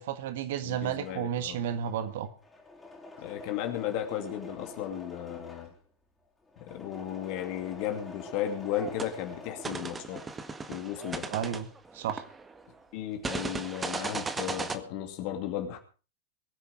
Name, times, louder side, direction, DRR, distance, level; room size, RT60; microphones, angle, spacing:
voice 1, 0.0-2.3 11.3-11.7 11.9-12.2, right 9 dB, 55° right, 1.7 m, -32 dB
voice 2, 0.6-1.6 3.2-5.7 6.6-10.2 10.7-11.3 12.9-15.8, left 11 dB, 45° left, 2.6 m, -35 dB
Engine / Mechanisms, 0.8-10.4 10.7-13.1 13.3-14.1, left 2 dB, 10° left, 4.5 m, -48 dB
sound 1, 8.7-9.1 9.6-12.6 13.2-14.8, right 4 dB, 15° right, 1.8 m, -36 dB
22.5 x 10.0 x 4.9 m
figure-of-eight pair, 90°, 0 cm